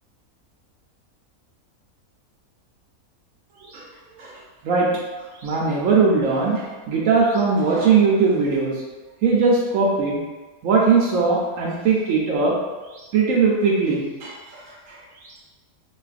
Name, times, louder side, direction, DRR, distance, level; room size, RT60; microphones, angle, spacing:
voice 1, 5.4-8.7 9.2-10.2 10.6-12.5 13.1-14.3, right 4 dB, 70° right, -3 dB, 0.9 m, -19 dB
3.9 x 2.4 x 2.4 m, 1.2 s
omnidirectional pair, 1.5 m